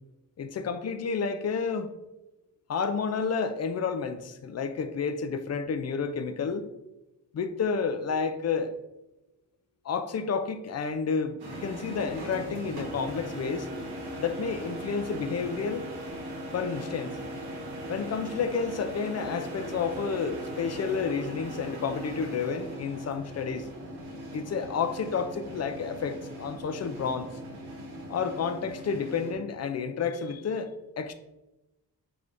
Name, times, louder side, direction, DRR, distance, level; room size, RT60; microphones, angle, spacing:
voice 1, 0.4-2.0 2.7-6.7 7.3-8.7 9.8-13.7 14.2-15.9 16.5-17.2 17.9-23.7 24.3-27.3 28.1-31.1, left 5 dB, 45° left, 0.4 m, -30 dB
sound 1, 11.4-29.4, right 1 dB, 80° right, 1.0 m, -39 dB
3.4 x 3.4 x 2.5 m
cardioid pair, 60°, 38 cm